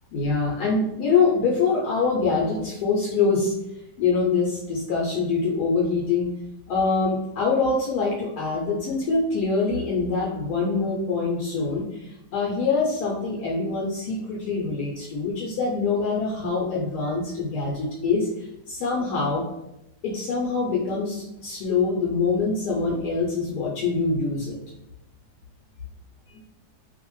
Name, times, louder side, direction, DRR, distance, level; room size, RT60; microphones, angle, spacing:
voice 1, 0.1-3.5 4.0-6.3 6.7-18.3 18.7-19.4 20.0-24.6 26.3-26.4, left 4 dB, 75° left, -3 dB, 1.1 m, -24 dB
2.6 x 2.4 x 3.0 m, 0.87 s
omnidirectional pair, 1.7 m